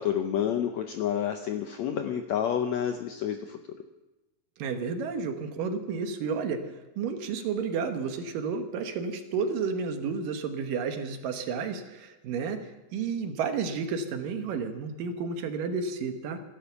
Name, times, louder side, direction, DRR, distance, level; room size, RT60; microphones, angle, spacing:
voice 1, 0.0-3.6, left 9 dB, 80° left, 6 dB, 1.6 m, -29 dB
voice 2, 4.6-6.6 7.0-16.4, right 5 dB, 75° right, 6 dB, 2.8 m, -31 dB
15.5 x 12.5 x 7.0 m, 1.0 s
omnidirectional pair, 4.0 m